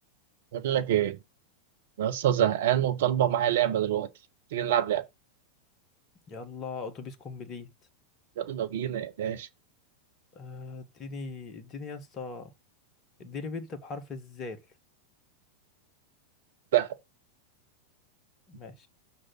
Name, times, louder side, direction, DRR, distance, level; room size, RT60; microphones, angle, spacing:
voice 1, 0.5-1.2 2.0-4.1 4.5-5.1 8.4-9.5 16.7-16.9, right 11 dB, 55° right, 0.9 m, -26 dB
voice 2, 6.3-7.7 10.3-12.5 13.2-14.7 18.5-18.9, left 4 dB, 30° left, 1.5 m, -40 dB
6.4 x 4.1 x 6.2 m
figure-of-eight pair, 90°, 0 cm